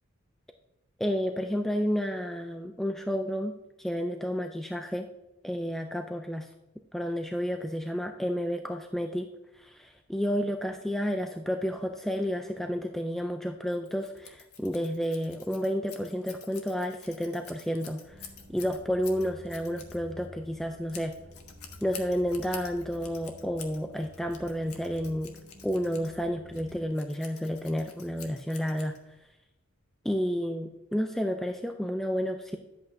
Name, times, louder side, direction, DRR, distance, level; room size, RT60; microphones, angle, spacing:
voice 1, 1.0-3.5 3.8-5.1 5.4-6.5 6.9-21.1 21.8-25.4 25.6-29.0 30.1-32.6, equal, ahead, 4 dB, 0.3 m, -31 dB
Scissors, 13.7-29.3, left 7 dB, 90° left, 1.3 m, -49 dB
sound 1, 18.0-26.9, equal, 55° right, 1.1 m, -50 dB
10.5 x 8.1 x 2.6 m, 0.97 s
head